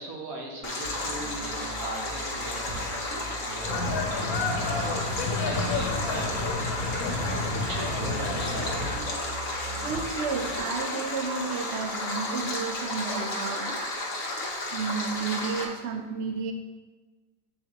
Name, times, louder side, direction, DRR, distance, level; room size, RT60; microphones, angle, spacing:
voice 1, 0.0-6.7 7.5-8.8, right 2 dB, 85° right, 0 dB, 1.5 m, -40 dB
Stream, 0.6-15.6, left 2 dB, 65° left, 1.4 m, -33 dB
sound 1, 0.8-10.6, right 1 dB, 40° right, 1.3 m, -41 dB
sound 2, 3.6-9.0, left 3 dB, 85° left, 1.3 m, -30 dB
voice 2, 9.8-13.6 14.7-16.5, right 5 dB, 60° right, 5 dB, 0.7 m, -32 dB
7.9 x 4.1 x 3.0 m, 1.3 s
omnidirectional pair, 1.5 m